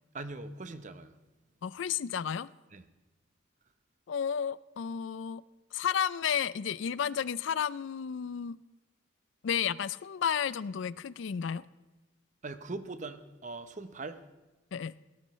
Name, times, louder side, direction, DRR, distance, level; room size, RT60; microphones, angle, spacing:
voice 1, 0.1-1.1 2.7-2.8 12.4-14.2, right 3 dB, 35° right, 0.8 m, -41 dB
voice 2, 1.6-2.5 4.1-5.4 5.7-8.6 9.4-11.6 14.7-14.9, left 8 dB, 65° left, 0.4 m, -32 dB
18.5 x 17.5 x 3.1 m
head